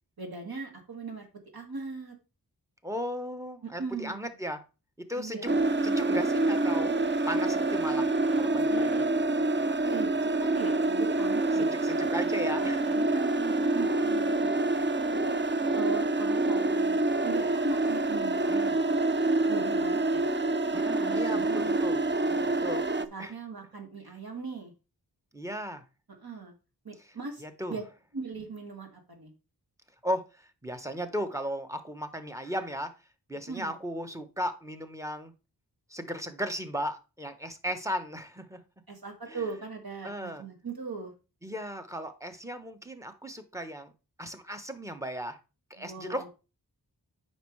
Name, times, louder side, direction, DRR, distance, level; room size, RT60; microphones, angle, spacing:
voice 1, 0.2-1.3 1.5-2.2 3.6-4.3 5.2-5.7 8.7-9.0 9.8-11.8 13.1-14.5 15.1-15.4 15.7-18.7 19.5-20.2 21.0-21.8 22.2-22.5 23.1-24.7 26.2-26.5 26.8-27.4 27.7-27.8 28.1-29.3 33.5-33.7 38.9-41.1 45.8-46.3, right 4 dB, 65° right, 3 dB, 2.1 m, -39 dB
voice 2, 2.8-4.6 5.0-5.4 5.8-6.9 7.3-9.0 11.5-13.0 18.5-18.8 20.7-22.0 22.5-22.8 23.2-23.3 25.3-25.8 27.4-27.8 30.0-32.9 33.3-35.3 35.9-38.6 39.3-39.4 40.0-40.4 41.4-43.9 44.2-45.4 45.7-46.3, equal, 10° right, 8 dB, 1.1 m, -36 dB
sound 1, 5.5-23.0, right 2 dB, 30° right, 0.6 m, -27 dB
9.1 x 5.4 x 3.2 m, 0.31 s
wide cardioid pair, 55°, 40 cm